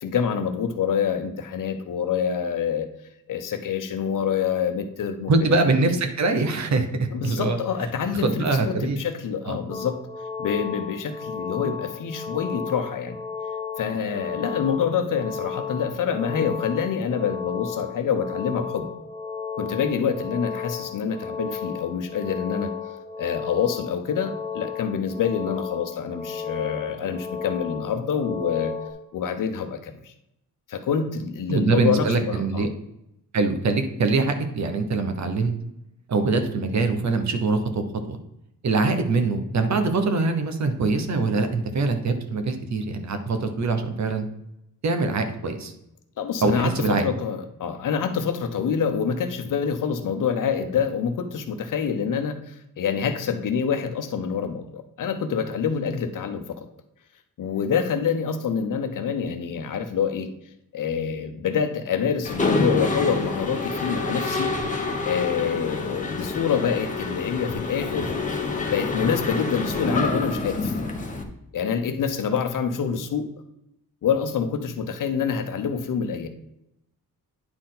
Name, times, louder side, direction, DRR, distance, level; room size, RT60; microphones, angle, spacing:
voice 1, 0.0-2.9 3.3-5.3 7.1-10.1 10.4-13.2 13.8-18.9 19.6-22.7 23.2-28.7 29.1-30.1 30.7-32.7 46.2-56.7 57.4-60.3 60.7-64.5 65.0-68.2 68.7-70.7 71.5-73.3 74.0-76.3, left 7 dB, 65° left, 7 dB, 0.9 m, -26 dB
voice 2, 5.3-7.6 8.2-9.0 9.5-9.6 31.5-32.7 33.3-35.5 36.1-38.2 38.6-44.3 44.8-45.7 46.4-47.0, right 3 dB, 55° right, 7 dB, 1.1 m, -23 dB
sound 1, 9.7-28.9, left 6 dB, 10° right, 1.9 m, -34 dB
Mechanisms, 62.2-71.2, left 3 dB, 20° left, 1.2 m, -27 dB
9.7 x 4.4 x 3.9 m, 0.82 s
cardioid pair, 120°, 34 cm